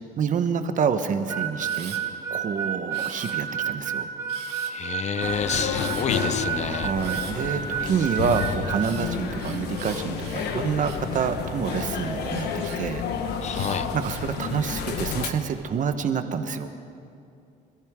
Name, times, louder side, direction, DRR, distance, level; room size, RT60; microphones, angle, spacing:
voice 1, 0.2-2.0 2.3-4.1 6.6-12.5 12.8-13.0 13.9-16.7, right 6 dB, 50° right, 8 dB, 1.1 m, -27 dB
Harmonica, 1.3-8.9, right 8 dB, 15° right, 2.5 m, -30 dB
Camera, 1.6-2.0 2.9-3.7 4.3-4.9 5.7-6.1 7.0-7.4 8.1-11.1 11.7-12.8 13.5-14.3 14.9-15.4, right 9 dB, 80° right, 1.9 m, -43 dB
voice 2, 4.7-6.9 13.4-13.9, left 7 dB, 45° left, 13 dB, 0.6 m, -29 dB
sound 1, 5.2-15.3, left 6 dB, 80° left, 1.3 m, -30 dB
27.0 x 14.0 x 3.7 m, 2.5 s
cardioid pair, 110°, 17 cm